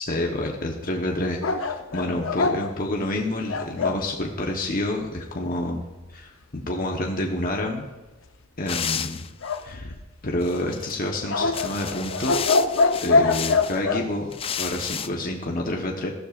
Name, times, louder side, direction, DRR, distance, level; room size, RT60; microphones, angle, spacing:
voice 1, 0.0-5.8 6.1-7.9 8.6-9.2 9.6-9.9 10.2-12.4 13.0-14.3 14.6-16.1, left 1 dB, 45° left, 0 dB, 1.1 m, -28 dB
sound 1, 1.4-4.0 9.4-10.3 11.3-14.1, left 3 dB, 85° left, 0.8 m, -24 dB
sound 2, 8.7-9.6 10.4-10.9 11.4-13.8 14.3-15.1, left 8 dB, 30° left, 0.4 m, -32 dB
15.5 x 12.0 x 2.5 m, 1.1 s
head